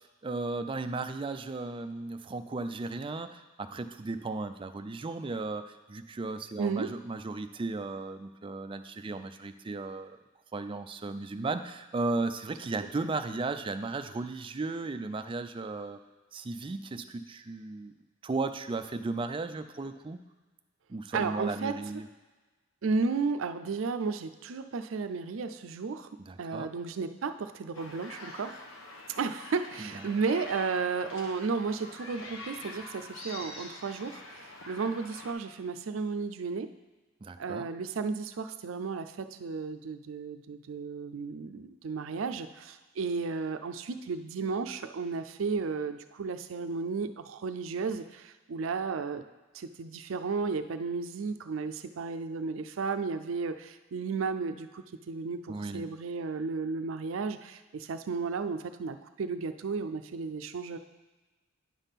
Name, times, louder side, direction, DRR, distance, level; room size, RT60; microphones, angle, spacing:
voice 1, 0.0-10.2 10.5-16.0 16.3-17.9 18.2-20.2 20.9-22.1 26.2-26.7 29.8-29.9 37.2-37.7 55.5-55.9, right 3 dB, 25° right, 9 dB, 0.4 m, -35 dB
voice 2, 6.6-6.9 21.1-22.0 22.8-26.1 26.4-28.6 29.2-36.7 37.4-49.2 49.5-60.8, right 4 dB, 90° right, 9 dB, 0.5 m, -33 dB
sound 1, 27.7-35.3, left 2 dB, 85° left, 1.1 m, -45 dB
9.8 x 3.6 x 5.7 m, 1.3 s
head